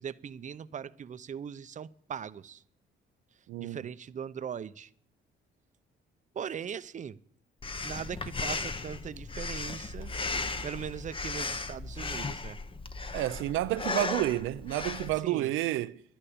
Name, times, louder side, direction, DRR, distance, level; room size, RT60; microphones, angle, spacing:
voice 1, 0.0-2.6 3.6-4.9 6.3-7.2 7.8-10.1 10.6-12.6 15.2-15.5, right 8 dB, 40° right, 0.6 m, -40 dB
voice 2, 3.5-3.8 13.1-16.0, right 15 dB, 85° right, 0.5 m, -30 dB
Breathing, 7.6-15.2, left 3 dB, 25° left, 0.9 m, -36 dB
11.0 x 10.0 x 8.7 m
cardioid pair, 90°, 20 cm